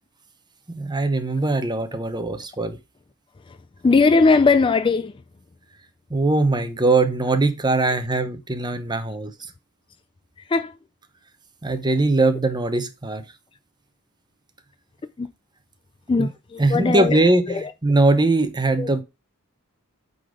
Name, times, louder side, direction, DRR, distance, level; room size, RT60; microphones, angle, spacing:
voice 1, 0.7-2.8 6.1-9.3 11.6-13.2 16.2-16.3 16.6-19.0, right 2 dB, 20° right, 0.8 m, -21 dB
voice 2, 3.8-5.1 10.5-10.7 15.2-15.3 16.1-17.2 17.5-17.6 18.8-18.9, left 4 dB, 20° left, 0.3 m, -19 dB
8.4 x 4.0 x 4.9 m
head